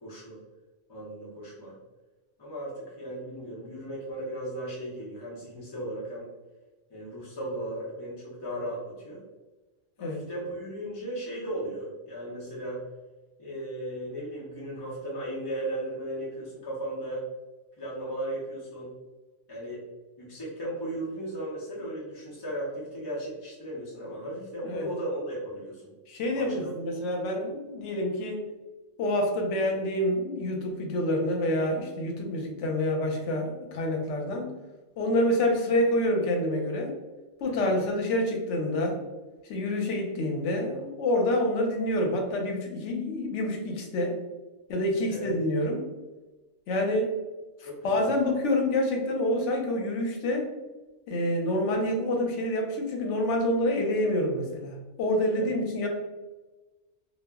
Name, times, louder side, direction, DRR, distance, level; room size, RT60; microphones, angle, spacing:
voice 1, 0.0-0.4 0.9-1.7 2.4-6.3 6.9-9.2 10.0-12.8 13.4-17.2 17.8-18.9 19.5-19.8 20.2-25.9 26.3-26.7 37.5-37.7 45.1-45.3 47.6-48.1 55.3-55.5, right 1 dB, 30° left, -7 dB, 0.5 m, -36 dB
voice 2, 26.1-28.4 29.0-34.5 35.0-36.9 37.4-39.0 39.4-44.1 44.7-45.9 46.7-47.1 47.6-50.5 51.1-55.9, left 1 dB, 85° left, 2 dB, 0.9 m, -27 dB
2.3 x 2.0 x 3.4 m, 1.2 s
omnidirectional pair, 1.2 m